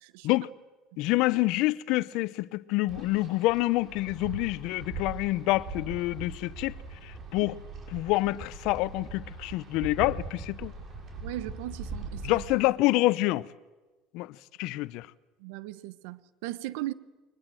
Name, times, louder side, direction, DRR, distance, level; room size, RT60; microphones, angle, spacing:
voice 1, 0.0-0.3 0.9-1.0 7.4-7.5 11.2-12.4 15.4-16.9, right 16 dB, 80° right, 0.9 m, -38 dB
voice 2, 1.0-6.7 7.0-7.6 7.9-10.7 12.2-13.5 14.1-15.1, left 19 dB, 70° left, 0.7 m, -27 dB
Wind, 2.9-12.6, right 3 dB, 45° right, 6.1 m, -41 dB
23.5 x 20.5 x 7.8 m
supercardioid pair, 100°, 0 cm